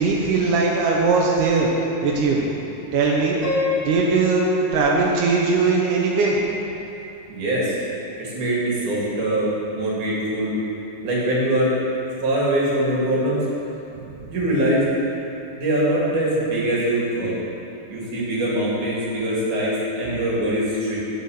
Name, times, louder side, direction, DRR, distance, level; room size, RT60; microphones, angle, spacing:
voice 1, 0.0-1.7 2.0-2.4 2.9-3.4 3.9-6.4 14.1-14.2, right 4 dB, 75° right, -3 dB, 2.0 m, -20 dB
Piano, 3.4-6.4, left 4 dB, 65° left, 0.8 m, -29 dB
voice 2, 7.3-7.7 8.2-10.6 11.0-11.7 12.2-13.4 14.3-14.9 15.6-17.3 17.9-21.0, right 1 dB, 55° right, -6 dB, 3.3 m, -22 dB
9.8 x 6.6 x 7.0 m, 2.9 s
omnidirectional pair, 4.7 m